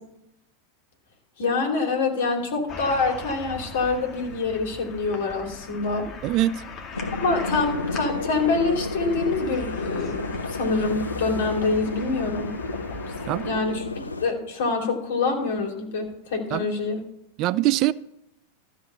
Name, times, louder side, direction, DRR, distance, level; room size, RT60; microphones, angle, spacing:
voice 1, 1.4-6.1 7.2-12.5 13.4-17.0, left 4 dB, 55° left, 2.9 m, -26 dB
sound 1, 2.7-13.5, left 3 dB, 30° left, 2.0 m, -39 dB
voice 2, 6.2-6.6 13.3-13.6 16.5-16.7 17.4-17.9, right 15 dB, 40° right, 0.4 m, -23 dB
sound 2, 6.9-14.3, left 2 dB, 80° left, 0.6 m, -31 dB
13.5 x 5.1 x 6.8 m
figure-of-eight pair, 90°, 0 cm